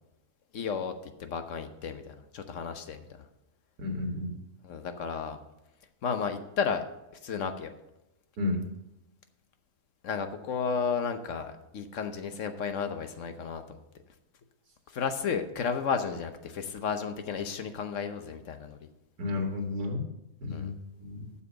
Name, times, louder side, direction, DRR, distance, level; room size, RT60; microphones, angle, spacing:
voice 1, 0.5-3.1 4.6-5.4 6.0-6.8 7.2-7.7 10.0-13.8 14.9-18.9 20.5-20.7, left 6 dB, 55° left, 8 dB, 1.2 m, -33 dB
voice 2, 3.8-4.4 8.4-8.6 19.2-20.1 20.4-20.7 21.0-21.3, left 3 dB, 75° right, 3 dB, 2.3 m, -32 dB
8.2 x 7.1 x 6.5 m, 0.93 s
omnidirectional pair, 1.6 m